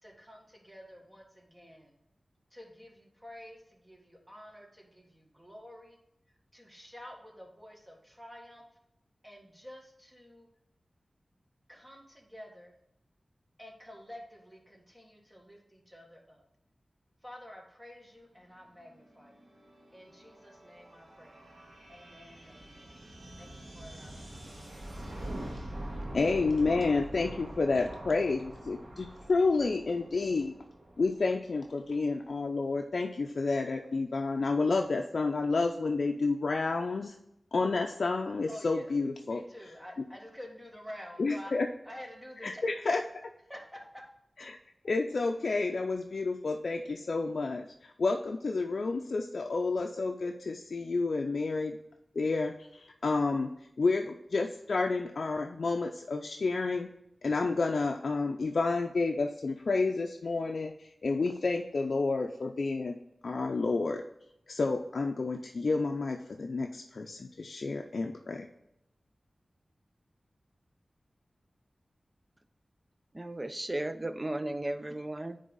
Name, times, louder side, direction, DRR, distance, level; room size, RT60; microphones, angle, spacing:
voice 1, 0.0-1.9 2.5-6.0 6.5-8.6 9.2-10.5 11.7-12.7 13.6-16.4 17.2-19.3 19.9-21.4 21.9-23.0 23.4-24.9 38.5-38.9 39.2-41.6 41.9-42.5 43.5-44.0, equal, 10° right, 0 dB, 1.6 m, -50 dB
sound 1, 18.8-32.2, right 1 dB, 65° right, 1.8 m, -45 dB
voice 2, 26.1-30.6 31.0-37.2 37.5-39.4 41.2-41.7 42.4-43.0 44.4-44.6 44.8-51.8 52.2-56.9 57.2-63.0 63.2-64.0 64.5-68.5, left 3 dB, 70° left, 3 dB, 0.5 m, -30 dB
voice 3, 73.1-75.4, right 1 dB, 25° right, 11 dB, 0.5 m, -35 dB
9.2 x 3.4 x 3.8 m, 0.81 s
wide cardioid pair, 75°, 0 cm